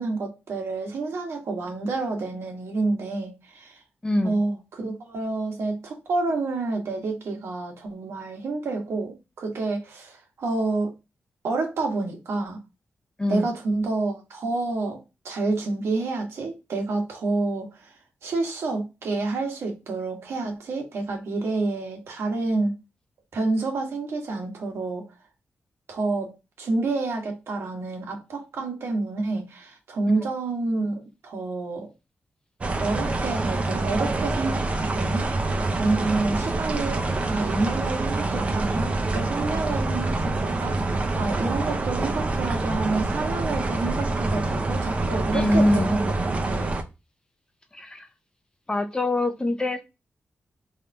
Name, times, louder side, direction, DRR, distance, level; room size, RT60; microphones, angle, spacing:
voice 1, 0.0-3.8 4.2-10.9 11.4-12.6 13.3-15.0 15.2-17.9 18.2-22.7 23.3-25.1 25.9-26.3 26.6-31.9 32.8-35.3 35.7-46.7, right 3 dB, 75° right, 1.3 m, -28 dB
voice 2, 4.0-4.3 13.2-13.5 30.2-30.3 45.3-45.9 47.7-48.1 48.7-49.8, left 1 dB, 20° left, 0.6 m, -23 dB
sound 1, 32.6-46.8, right 2 dB, 30° right, 0.6 m, -26 dB
3.5 x 2.6 x 4.4 m
wide cardioid pair, 125°, 4 cm